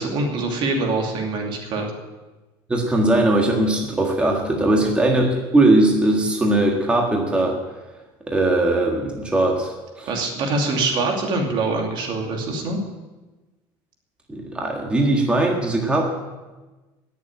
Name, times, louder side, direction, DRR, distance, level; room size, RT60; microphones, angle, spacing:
voice 1, 0.0-1.9 4.7-4.9 10.1-12.8, right 3 dB, 55° right, 2 dB, 2.7 m, -24 dB
voice 2, 2.7-5.3 5.5-7.6 8.3-10.1 14.3-16.1, right 2 dB, 10° right, 0 dB, 1.6 m, -19 dB
18.0 x 7.2 x 9.0 m, 1.2 s
cardioid pair, 155°, 10 cm